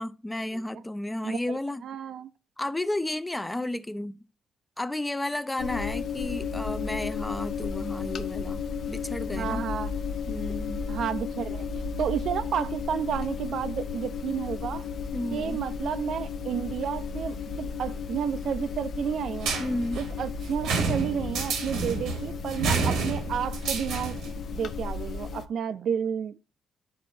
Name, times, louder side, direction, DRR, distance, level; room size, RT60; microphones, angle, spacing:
voice 1, 0.0-1.8 2.6-4.2 4.8-9.7 10.3-10.8 15.1-15.6 19.6-20.0, left 1 dB, 15° left, 0.4 m, -32 dB
voice 2, 1.2-1.6 1.8-2.3 9.4-9.9 10.9-14.8 15.3-19.5 20.0-24.2 24.5-26.4, right 8 dB, 65° right, 0.4 m, -31 dB
sound 1, 5.6-25.5, left 5 dB, 60° left, 0.5 m, -34 dB
sound 2, 19.4-24.4, right 4 dB, 90° right, 1.3 m, -30 dB
11.5 x 4.2 x 2.6 m
cardioid pair, 90°, 0 cm